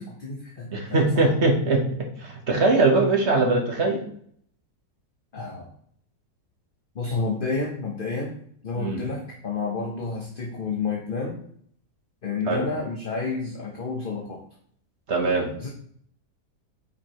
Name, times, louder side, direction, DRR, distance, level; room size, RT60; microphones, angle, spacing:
voice 1, 0.0-1.3 5.3-5.7 6.9-8.3 8.6-11.4 12.2-14.4 15.6-15.7, left 4 dB, 40° left, -1 dB, 1.0 m, -30 dB
voice 2, 0.7-1.8 2.2-4.0 8.7-9.0 12.5-12.7 15.1-15.5, right 3 dB, 45° right, 1 dB, 1.4 m, -21 dB
8.5 x 4.9 x 3.0 m, 0.63 s
omnidirectional pair, 1.8 m